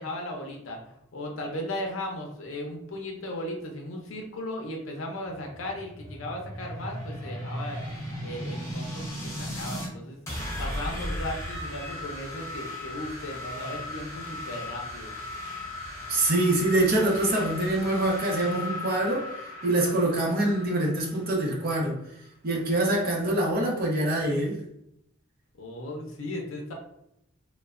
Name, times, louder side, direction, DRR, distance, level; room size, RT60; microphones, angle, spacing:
voice 1, 0.0-7.8 8.2-10.2 10.6-15.1 25.6-26.7, left 1 dB, 75° left, 1 dB, 0.5 m, -36 dB
sound 1, 5.2-9.9 10.3-21.8, left 1 dB, 15° left, 0.8 m, -37 dB
voice 2, 16.1-19.3 19.6-22.0 22.4-24.6, right 1 dB, 50° right, -1 dB, 0.6 m, -25 dB
3.0 x 2.1 x 2.4 m, 0.78 s
head